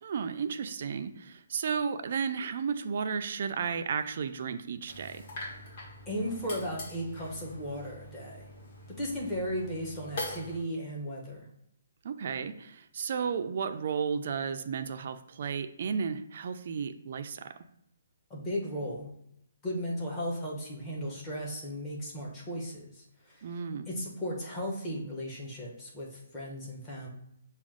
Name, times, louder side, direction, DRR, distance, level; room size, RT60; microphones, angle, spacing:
voice 1, 0.0-5.3 12.0-17.6 23.4-23.9, right 6 dB, 40° right, 9 dB, 0.3 m, -33 dB
sound 1, 4.9-10.6, left 2 dB, 40° left, 1.5 m, -43 dB
voice 2, 6.1-8.5 8.9-11.5 18.3-19.1 19.6-23.4 23.9-27.1, equal, 10° left, -3 dB, 0.8 m, -36 dB
6.0 x 2.3 x 3.6 m, 0.75 s
hypercardioid pair, 175°, 0 cm